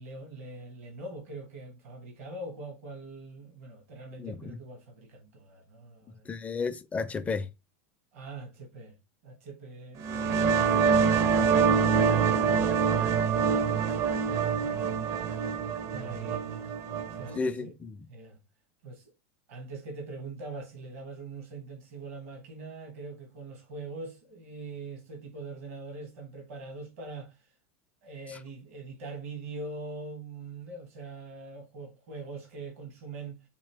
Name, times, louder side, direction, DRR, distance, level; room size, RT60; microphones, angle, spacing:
voice 1, 0.0-6.3 8.1-9.0 9.2-13.9 14.6-15.1 15.9-16.7 17.2-17.7 18.1-18.4 18.8-19.1 19.5-27.5 28.0-33.4, right 3 dB, 75° right, 1.3 m, -43 dB
voice 2, 4.2-4.6 6.3-7.5 14.5-15.0 17.3-18.0 28.3-28.4, left 4 dB, 20° left, 0.4 m, -33 dB
sound 1, 10.0-17.4, right 6 dB, 45° right, 0.5 m, -25 dB
3.8 x 2.6 x 3.3 m
hypercardioid pair, 100°, 8 cm